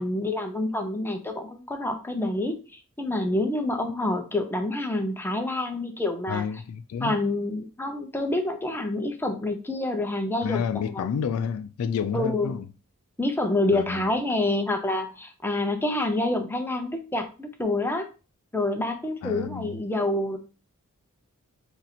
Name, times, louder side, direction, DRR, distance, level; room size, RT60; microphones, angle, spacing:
voice 1, 0.0-6.4 7.0-10.6 10.9-11.1 12.1-12.6 13.2-18.0 18.5-20.4, left 2 dB, 10° left, 0.5 m, -27 dB
voice 2, 6.3-7.2 10.4-12.6 13.7-14.1 19.2-19.8, left 7 dB, 70° left, 0.3 m, -30 dB
2.8 x 2.5 x 4.1 m
head